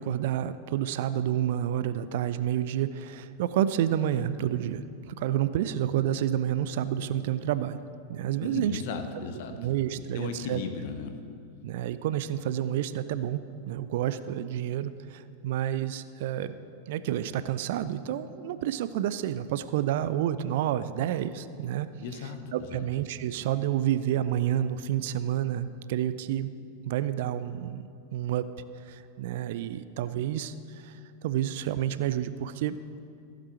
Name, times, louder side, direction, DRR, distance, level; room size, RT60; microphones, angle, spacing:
voice 1, 0.0-7.8 8.1-8.8 9.5-10.6 11.6-16.6 16.9-21.9 22.5-26.5 26.9-27.8 28.1-28.4 28.8-30.5 30.8-31.0 31.2-32.8, right 11 dB, 50° right, 14 dB, 0.4 m, -29 dB
voice 2, 8.4-9.6 9.9-11.2 22.0-22.8, left 5 dB, 50° left, 6 dB, 1.0 m, -36 dB
15.0 x 7.5 x 4.4 m, 2.4 s
figure-of-eight pair, 90°, 0 cm